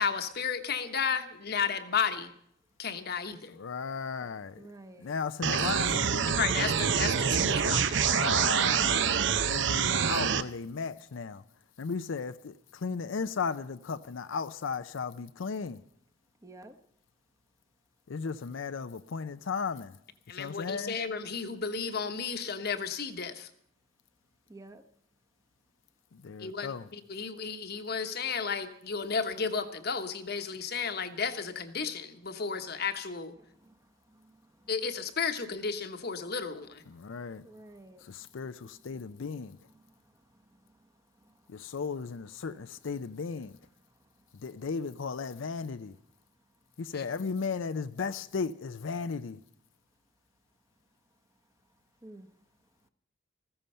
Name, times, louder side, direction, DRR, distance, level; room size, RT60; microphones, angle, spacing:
voice 1, 0.0-2.3 2.8-3.5 6.3-8.1 20.3-23.5 26.4-33.3 34.7-36.8 46.9-47.0, left 6 dB, 50° left, 1.1 m, -33 dB
voice 2, 3.5-4.7 5.0-6.4 8.0-11.4 11.8-15.8 18.1-20.0 20.4-21.0 26.1-26.9 36.9-37.4 38.0-39.6 41.5-43.5 44.3-46.0 46.8-49.4, left 5 dB, 70° left, 0.5 m, -35 dB
voice 3, 4.6-5.1 16.4-16.8 24.5-24.8 33.6-33.7 34.2-34.3 37.4-38.0 52.0-52.3, right 2 dB, 15° right, 0.9 m, -50 dB
sound 1, 5.4-10.4, right 7 dB, 65° right, 0.6 m, -26 dB
14.5 x 14.5 x 5.5 m
head